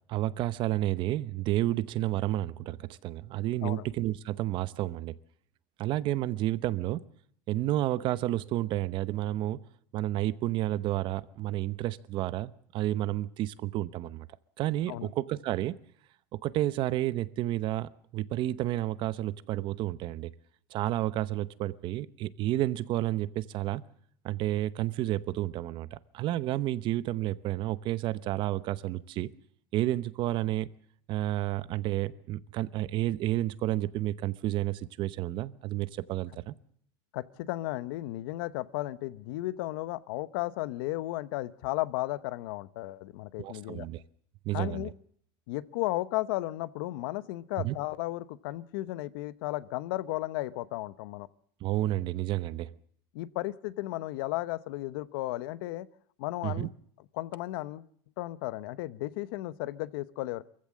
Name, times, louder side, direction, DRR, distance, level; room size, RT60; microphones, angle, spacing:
voice 1, 0.1-5.1 5.8-7.0 7.5-9.6 9.9-14.3 14.6-15.8 16.4-20.3 20.7-23.8 24.2-29.3 29.7-30.7 31.1-36.5 43.4-44.0 44.4-44.9 47.6-47.8 51.6-52.7 56.4-56.7, right 14 dB, 45° right, 17 dB, 0.8 m, -31 dB
voice 2, 37.1-43.9 44.5-44.9 45.5-51.3 53.1-55.9 56.2-56.7 57.1-57.8 58.2-60.4, left 17 dB, 80° left, 17 dB, 0.9 m, -34 dB
23.5 x 15.5 x 7.5 m, 0.65 s
cardioid pair, 155°, 12 cm